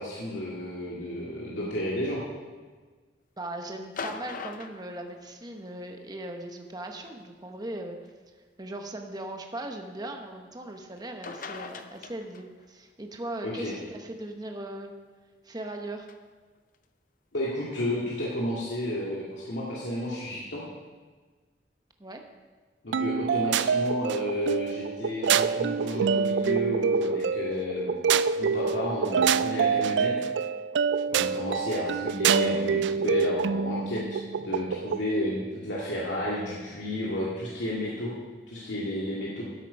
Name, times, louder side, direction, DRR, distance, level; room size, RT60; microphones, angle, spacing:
voice 1, 0.0-2.2 13.4-13.7 17.3-20.6 22.8-30.1 31.1-38.1 38.5-39.4, left 1 dB, 90° left, -6 dB, 2.1 m, -32 dB
voice 2, 3.4-8.0 8.6-14.9 15.4-16.1 22.0-22.2, right 1 dB, 20° right, 4 dB, 1.0 m, -38 dB
sound 1, 3.8-5.8 7.0-7.2 8.1-8.2 11.0-11.1 11.2-12.7 16.1-16.2, left 4 dB, 50° left, 0.6 m, -40 dB
sound 2, 22.9-35.1, right 6 dB, 75° right, 0.3 m, -26 dB
13.0 x 8.3 x 5.3 m, 1.4 s
head